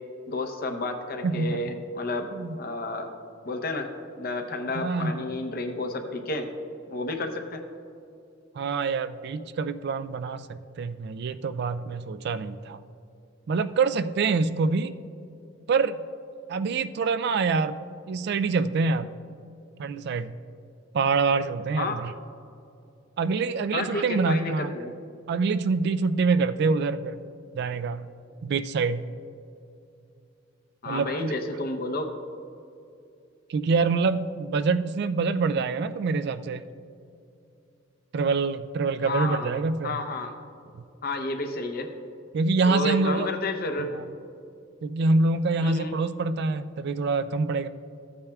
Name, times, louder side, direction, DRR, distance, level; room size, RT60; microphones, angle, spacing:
voice 1, 0.3-2.3 2.6-3.1 3.4-6.5 6.9-7.6 21.8-22.0 23.7-24.9 30.8-32.1 39.0-39.5 39.8-40.3 41.0-41.9 42.7-43.9 45.6-45.9, left 2 dB, 50° left, 5 dB, 0.8 m, -31 dB
voice 2, 1.2-1.6 2.3-2.6 4.7-5.2 8.6-12.8 13.5-14.9 15.7-16.0 16.5-19.1 19.8-20.3 20.9-22.1 23.2-24.7 25.3-27.2 27.6-28.1 28.4-29.0 30.9-31.3 33.5-36.6 38.1-40.0 42.3-43.3 43.8-43.9 44.8-47.7, right 4 dB, 60° right, 11 dB, 0.3 m, -25 dB
14.0 x 8.7 x 2.3 m, 2.6 s
head